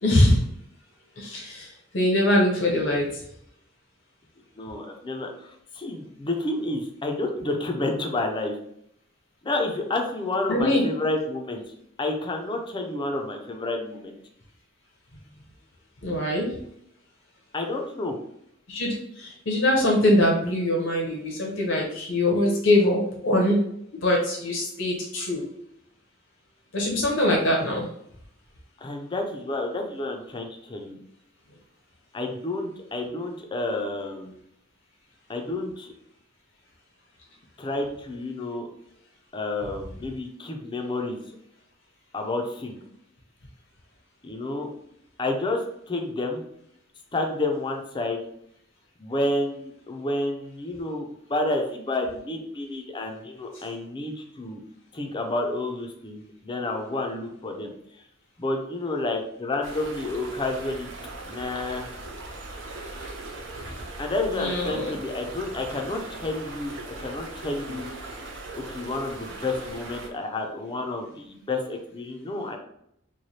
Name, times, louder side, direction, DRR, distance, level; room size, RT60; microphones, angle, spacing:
voice 1, 0.0-0.4 1.2-3.1 10.5-10.8 16.0-16.5 18.7-23.6 23.9-25.4 26.7-27.9 64.4-64.9, left 1 dB, 70° left, -1 dB, 0.9 m, -23 dB
voice 2, 4.6-8.6 9.4-11.6 12.0-14.1 17.5-18.2 28.8-31.0 32.1-34.3 35.3-35.9 37.6-38.7 39.3-41.2 42.1-42.8 44.2-44.7 45.2-46.4 47.1-48.2 49.0-54.6 54.9-57.7 58.4-60.9 61.2-61.9 64.0-67.9 68.5-72.6, left 2 dB, 25° left, 3 dB, 0.5 m, -30 dB
sound 1, 59.6-70.1, right 2 dB, 70° right, 0.7 m, -39 dB
3.2 x 2.2 x 4.1 m, 0.72 s
head